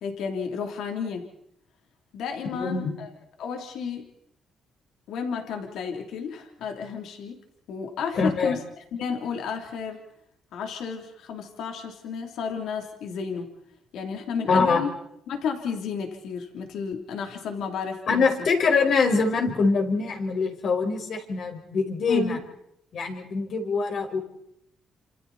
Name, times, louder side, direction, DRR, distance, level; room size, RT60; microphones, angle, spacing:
voice 1, 0.0-1.3 2.1-3.1 3.4-4.0 5.1-7.4 7.7-8.6 8.9-10.0 10.5-13.5 13.9-14.9 15.3-18.2 22.1-22.4, left 6 dB, 80° left, 3 dB, 3.2 m, -32 dB
voice 2, 2.5-2.9 8.2-8.6 14.5-14.8 18.1-22.4 22.9-24.2, left 4 dB, 60° left, 2 dB, 5.1 m, -24 dB
29.0 x 26.5 x 4.2 m, 0.76 s
cardioid pair, 90°, 0 cm